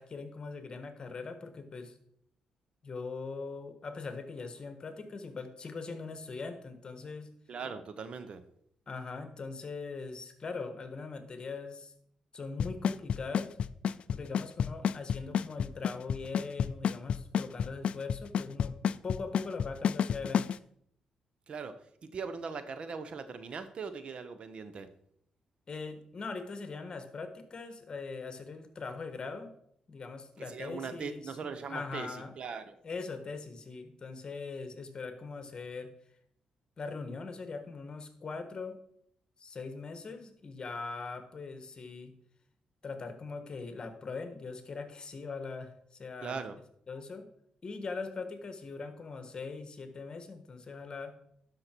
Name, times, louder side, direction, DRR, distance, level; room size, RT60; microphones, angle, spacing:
voice 1, 0.0-2.0 2.8-7.3 8.9-11.9 12.3-13.6 14.1-18.7 19.0-20.6 25.7-29.5 29.9-31.3 31.7-32.3 32.8-35.9 36.8-38.8 39.4-42.1 42.8-46.4 46.9-47.3 47.6-51.1, left 4 dB, 40° left, 8 dB, 1.4 m, -41 dB
voice 2, 7.5-8.4 21.5-24.9 30.4-32.7 46.2-46.6, right 5 dB, 55° right, 11 dB, 0.9 m, -40 dB
Drum kit / Snare drum / Bass drum, 12.6-20.6, left 8 dB, 60° left, 0.3 m, -29 dB
12.0 x 5.7 x 4.5 m, 0.69 s
cardioid pair, 80°, 2 cm